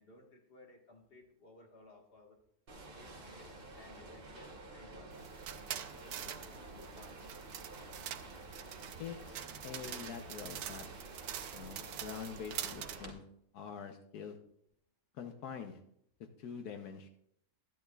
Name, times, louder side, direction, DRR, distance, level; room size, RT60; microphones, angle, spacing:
voice 1, 0.0-2.4 2.9-5.3 5.8-7.2, left 2 dB, 40° left, 2 dB, 1.7 m, -58 dB
sound 1, 2.7-13.1, right 2 dB, 40° right, 1.2 m, -50 dB
sound 2, 5.1-13.0, right 10 dB, 80° right, 1.1 m, -45 dB
voice 2, 9.0-10.9 11.5-13.2 13.5-14.4 15.1-15.8 16.4-17.1, left 7 dB, 85° left, 6 dB, 1.3 m, -45 dB
13.5 x 10.5 x 2.3 m, 0.72 s
omnidirectional pair, 1.6 m